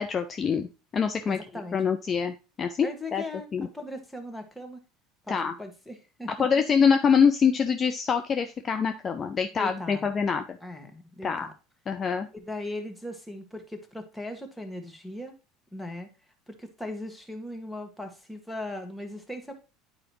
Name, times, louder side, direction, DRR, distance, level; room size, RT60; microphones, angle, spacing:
voice 1, 0.0-1.4 1.7-2.9 3.1-3.2 3.5-3.7 5.3-5.5 6.3-10.6 11.2-11.5 11.9-12.3, left 6 dB, 35° left, 8 dB, 0.6 m, -25 dB
voice 2, 1.3-1.8 2.8-4.8 5.2-6.5 9.6-10.1 10.6-11.5 12.3-15.4 15.7-16.1 16.5-19.5, left 1 dB, 5° left, 4 dB, 1.7 m, -38 dB
9.6 x 4.9 x 3.0 m, 0.30 s
hypercardioid pair, 75°, 0 cm